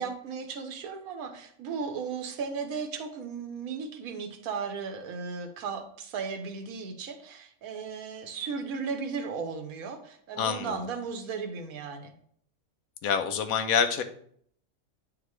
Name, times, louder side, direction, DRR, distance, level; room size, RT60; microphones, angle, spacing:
voice 1, 0.0-12.1, right 5 dB, 80° right, 5 dB, 1.2 m, -36 dB
voice 2, 10.4-10.8 13.0-14.0, left 6 dB, 80° left, 8 dB, 1.1 m, -26 dB
9.3 x 3.7 x 3.1 m, 0.63 s
omnidirectional pair, 1.5 m